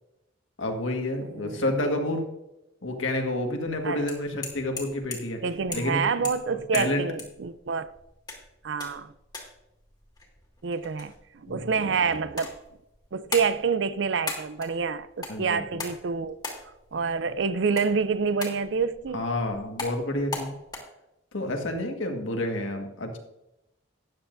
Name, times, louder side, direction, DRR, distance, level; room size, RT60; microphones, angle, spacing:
voice 1, 0.6-2.2 2.8-5.4 5.7-6.0 6.7-7.1 11.5-11.7 15.3-15.8 19.1-20.5 21.3-23.2, left 1 dB, 85° left, 1.7 m, -29 dB
sound 1, 3.7-20.8, left 3 dB, 20° left, 1.9 m, -41 dB
voice 2, 5.4-7.9 8.6-9.1 10.6-12.6 13.1-16.4 16.9-19.2 21.6-21.8, right 5 dB, 65° right, 0.5 m, -27 dB
12.5 x 9.5 x 2.6 m
head